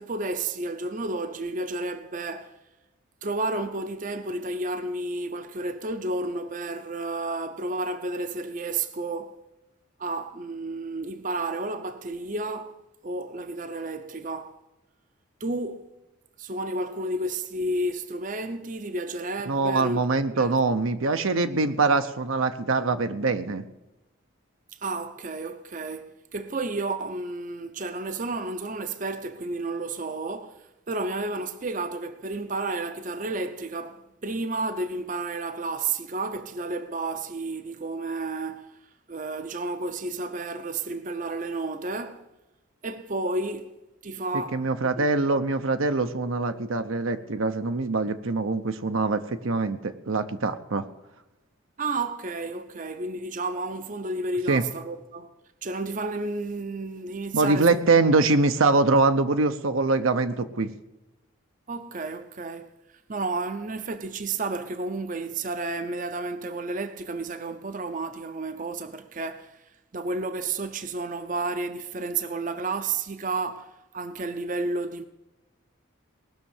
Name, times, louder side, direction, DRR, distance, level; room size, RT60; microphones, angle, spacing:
voice 1, 0.0-2.6 3.2-9.4 10.0-12.8 13.0-14.6 15.4-15.9 16.4-20.0 20.3-20.5 24.7-38.8 39.1-42.3 42.8-43.8 44.0-44.6 45.0-45.1 51.8-55.3 55.6-57.8 61.7-62.7 63.1-75.1, right 2 dB, 40° right, 0.6 m, -31 dB
voice 2, 19.5-23.6 44.5-50.9 54.5-54.6 57.3-60.7, right 3 dB, 75° right, 0.8 m, -23 dB
18.5 x 6.5 x 7.1 m
head